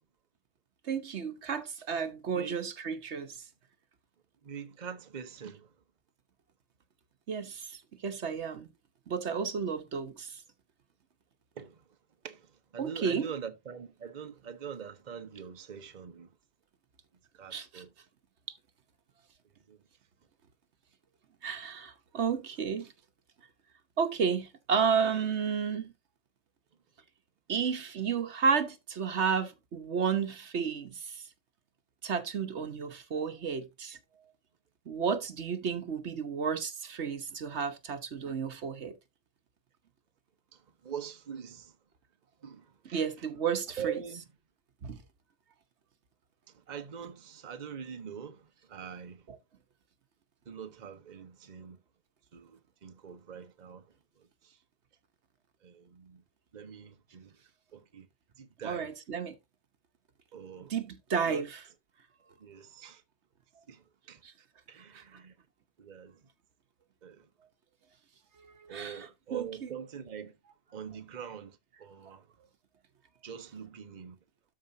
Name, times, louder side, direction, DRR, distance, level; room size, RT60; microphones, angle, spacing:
voice 1, 0.8-3.4 7.3-8.7 9.1-10.4 12.8-13.3 17.5-17.8 21.4-22.9 24.0-25.9 27.5-31.2 32.0-34.0 34.9-38.9 42.9-43.9 44.8-45.0 58.6-59.3 60.7-61.6 64.2-64.3 64.9-65.0 68.6-69.7, right 6 dB, 70° right, 1.3 m, -32 dB
voice 2, 4.4-5.7 11.6-11.8 12.2-16.3 17.3-17.9 19.7-19.8 40.5-41.8 42.4-43.1 43.8-44.2 46.5-49.2 50.5-51.8 52.3-54.6 55.6-56.2 56.5-57.4 57.7-58.1 58.4-58.9 60.3-60.7 61.3-61.4 62.4-63.0 63.7-64.2 64.7-65.3 65.8-66.2 67.0-67.3 68.7-70.3 70.7-72.3 73.2-74.2, right 7 dB, 40° right, 1.0 m, -44 dB
13.0 x 4.9 x 2.7 m
omnidirectional pair, 1.2 m